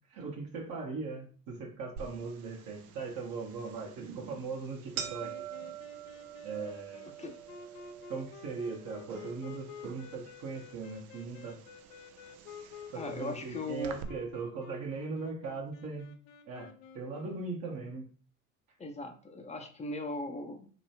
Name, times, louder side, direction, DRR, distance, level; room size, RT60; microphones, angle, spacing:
voice 1, 0.1-5.3 6.4-7.0 8.1-11.6 12.9-16.1 16.5-18.1, right 4 dB, 50° right, -1 dB, 1.0 m, -39 dB
sound 1, 2.0-14.0, right 9 dB, 80° right, 0.6 m, -47 dB
sound 2, 4.9-17.6, left 6 dB, 70° left, 0.6 m, -50 dB
voice 2, 12.9-14.0 18.8-20.7, left 2 dB, 15° left, 5 dB, 0.6 m, -39 dB
3.0 x 2.9 x 2.8 m, 0.41 s
figure-of-eight pair, 60°, 43 cm